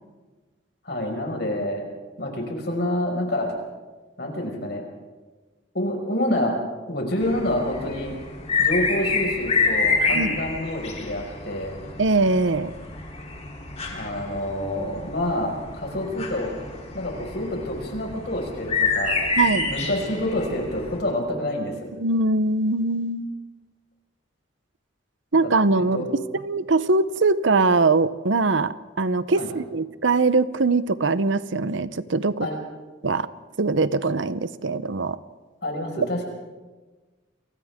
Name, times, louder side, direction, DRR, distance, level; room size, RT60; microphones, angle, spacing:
voice 1, 0.8-1.9 2.2-3.5 4.2-4.8 5.7-6.6 6.9-8.2 8.6-11.8 13.9-16.5 16.9-19.2 19.7-21.9 25.4-25.5 25.8-26.1 29.4-29.5 32.4-32.6 35.6-36.3, left 1 dB, 60° left, 1 dB, 5.5 m, -27 dB
sound 1, 7.2-21.0, left 4 dB, 35° left, 3.4 m, -28 dB
voice 2, 10.1-10.4 12.0-12.7 19.4-19.7 22.0-23.3 25.3-32.5 33.0-33.3 33.6-35.2, right 3 dB, 80° right, 14 dB, 0.8 m, -22 dB
30.0 x 24.0 x 3.7 m, 1.3 s
head